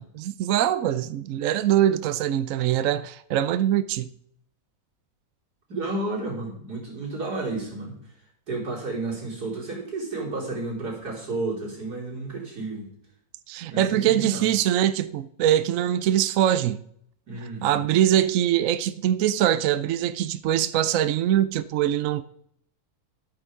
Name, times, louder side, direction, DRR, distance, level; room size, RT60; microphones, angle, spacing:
voice 1, 0.0-4.1 13.5-16.8 17.6-22.2, right 11 dB, 70° right, 0.9 m, -23 dB
voice 2, 5.7-8.0 8.5-12.9 13.7-14.5 17.3-17.8, right 2 dB, 90° right, 4.1 m, -32 dB
11.5 x 9.1 x 4.8 m
omnidirectional pair, 1.7 m